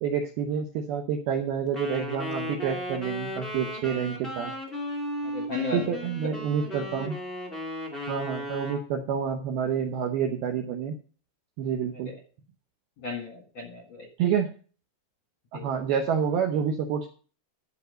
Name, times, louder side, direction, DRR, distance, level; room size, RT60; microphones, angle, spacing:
voice 1, 0.0-4.5 5.7-7.2 8.1-11.0 11.6-12.1 14.2-14.5 15.5-17.1, right 7 dB, 80° right, 4 dB, 2.2 m, -28 dB
Wind instrument woodwind instrument, 1.7-8.9, equal, ahead, 1.2 m, -35 dB
voice 2, 5.2-6.0 13.0-14.1 15.5-15.7, left 3 dB, 65° left, 2 dB, 1.7 m, -34 dB
13.0 x 5.5 x 6.3 m, 0.40 s
omnidirectional pair, 5.6 m